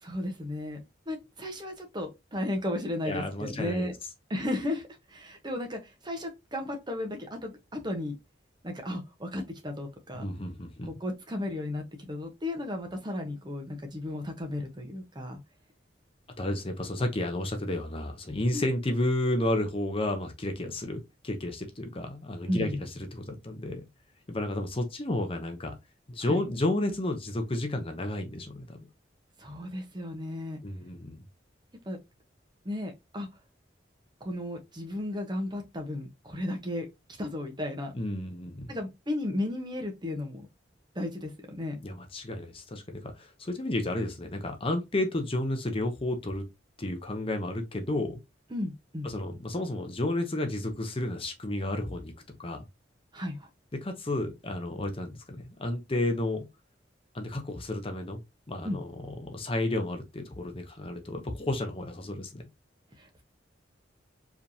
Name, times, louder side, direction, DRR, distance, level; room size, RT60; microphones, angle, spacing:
voice 1, 0.0-3.9 4.3-8.2 8.6-10.3 10.9-15.4 18.5-18.7 22.5-22.8 26.2-26.4 29.4-30.6 31.9-32.0 32.6-33.3 34.2-36.9 37.2-37.9 38.7-40.5 40.9-41.8 48.5-49.1 53.1-53.5 58.6-58.8 63.0-63.2, left 1 dB, 25° right, 1.1 m, -34 dB
voice 2, 3.0-3.9 10.1-10.9 16.4-23.9 24.3-25.8 26.1-28.8 30.6-31.2 37.9-38.8 41.8-46.4 46.8-48.2 49.0-52.1 52.4-52.6 53.7-56.5 57.1-58.2 58.5-62.5, left 1 dB, 30° left, 0.8 m, -32 dB
4.9 x 3.4 x 2.8 m
head